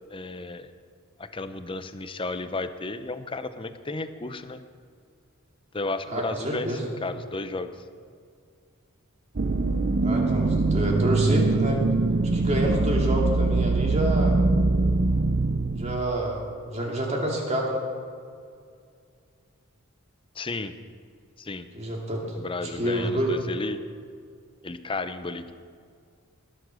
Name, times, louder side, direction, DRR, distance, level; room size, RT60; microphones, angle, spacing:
voice 1, 0.1-0.7 1.2-4.6 5.7-7.8 20.3-20.7 21.4-21.7 22.3-23.8 24.6-25.5, left 3 dB, 25° left, 11 dB, 0.6 m, -33 dB
voice 2, 6.1-6.8 10.0-11.8 12.3-14.4 15.8-16.4 16.7-17.8 21.7-22.4 22.8-23.3, right 1 dB, 30° right, -1 dB, 2.5 m, -28 dB
sound 1, 9.4-16.0, right 3 dB, 45° right, 0.6 m, -23 dB
20.0 x 7.7 x 6.3 m, 2.3 s
head